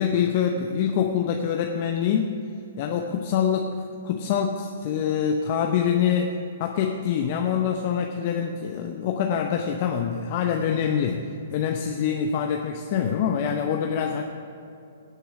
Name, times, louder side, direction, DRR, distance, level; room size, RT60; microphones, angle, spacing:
voice 1, 0.0-2.4 2.8-6.3 6.6-14.2, left 8 dB, 45° left, 4 dB, 0.8 m, -25 dB
17.5 x 7.9 x 4.9 m, 2.6 s
figure-of-eight pair, 120°, 0 cm